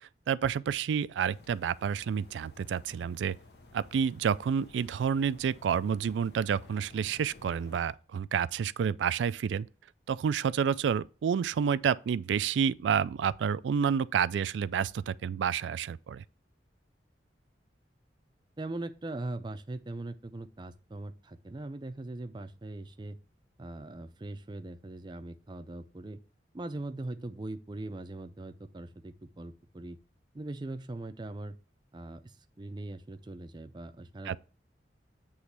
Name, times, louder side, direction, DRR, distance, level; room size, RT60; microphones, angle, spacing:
voice 1, 0.3-3.4 3.7-9.7 10.1-16.2 34.3-34.4, right 7 dB, 90° right, 0.3 m, -29 dB
sound 1, 1.3-7.8, left 3 dB, 65° left, 0.9 m, -54 dB
voice 2, 18.6-23.2 23.6-26.2 26.5-30.0 30.3-31.6 31.9-34.4, right 2 dB, 25° right, 0.4 m, -40 dB
8.1 x 3.1 x 5.9 m
head